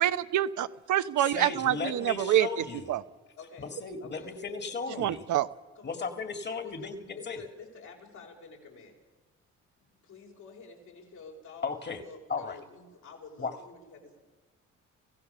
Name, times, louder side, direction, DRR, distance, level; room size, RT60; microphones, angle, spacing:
voice 1, 0.0-2.5 2.9-3.0 5.0-5.5, right 12 dB, 75° right, 10 dB, 1.0 m, -26 dB
voice 2, 1.2-3.0 3.6-5.2 5.8-7.5 11.6-12.0 12.3-12.6 13.4-13.5, left 4 dB, 35° left, 7 dB, 2.3 m, -36 dB
voice 3, 3.4-5.5 5.8-6.0 6.6-9.0 10.0-11.7 12.0-14.2, left 4 dB, 75° left, 0 dB, 5.7 m, -50 dB
26.0 x 16.0 x 6.8 m, 1.4 s
cardioid pair, 90°, 30 cm